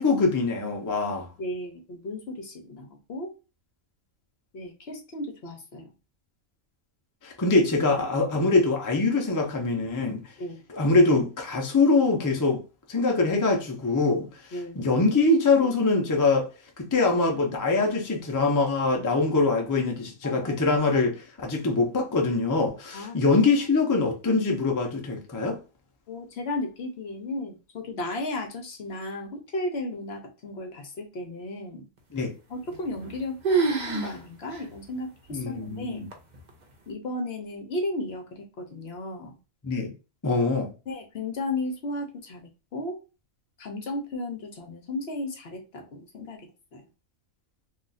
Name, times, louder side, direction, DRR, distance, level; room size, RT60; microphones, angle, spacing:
voice 1, 0.0-1.3 7.2-10.2 10.7-12.6 12.9-14.3 14.8-16.5 16.8-25.6 32.1-32.3 35.3-36.1 39.6-39.9 40.2-40.7, left 3 dB, 30° left, 0.3 m, -23 dB
voice 2, 1.4-3.3 4.5-5.9 10.4-10.6 14.5-14.9 20.2-20.6 22.9-23.2 26.1-31.9 32.5-33.4 33.8-36.1 36.9-39.3 40.9-42.4 42.7-43.0 43.6-46.4 46.7-46.8, left 2 dB, 60° left, 0.8 m, -34 dB
sound 1, 32.7-33.2 33.4-34.2 34.5-34.6 35.3-35.4 36.1-36.5, right 4 dB, 45° right, 0.7 m, -26 dB
2.4 x 2.4 x 3.9 m
omnidirectional pair, 1.4 m